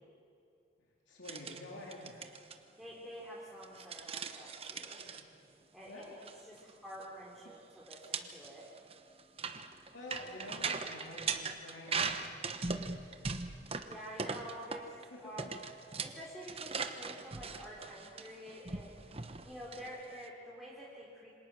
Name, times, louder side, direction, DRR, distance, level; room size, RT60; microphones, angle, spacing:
voice 1, 1.1-2.2 5.1-5.3 5.8-6.2 7.5-7.6 9.9-13.0 15.1-15.5 17.8-17.9, left 1 dB, 85° left, -3 dB, 3.7 m, -49 dB
sound 1, 1.2-1.6 1.9-2.5 3.6-5.2 6.0-6.3 6.6-6.7 7.0-7.1 7.9-15.0 15.4-20.3, right 5 dB, 30° right, 1.1 m, -39 dB
voice 2, 2.8-5.1 5.7-8.7 13.8-15.5 16.0-18.9 19.4-21.3, equal, ahead, -5 dB, 3.6 m, -48 dB
27.5 x 26.0 x 6.4 m, 2.5 s
head